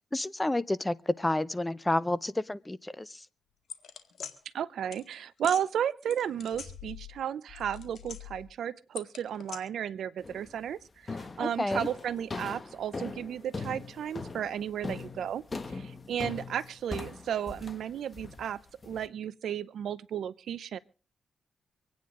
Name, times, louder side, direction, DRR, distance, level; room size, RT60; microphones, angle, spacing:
voice 1, 0.1-3.2 11.4-11.9, left 1 dB, 15° left, 0.6 m, -30 dB
sound 1, 3.7-4.3 4.9-5.0 5.4-5.6 6.1-7.2 7.5-8.5 9.0-9.6, left 7 dB, 65° left, 1.9 m, -42 dB
voice 2, 4.5-15.4 15.7-20.8, right 9 dB, 80° right, 0.6 m, -34 dB
sound 2, 10.2-10.6 11.1-19.1, left 3 dB, 35° left, 1.3 m, -40 dB
25.5 x 9.4 x 3.8 m
cardioid pair, 65°, 0 cm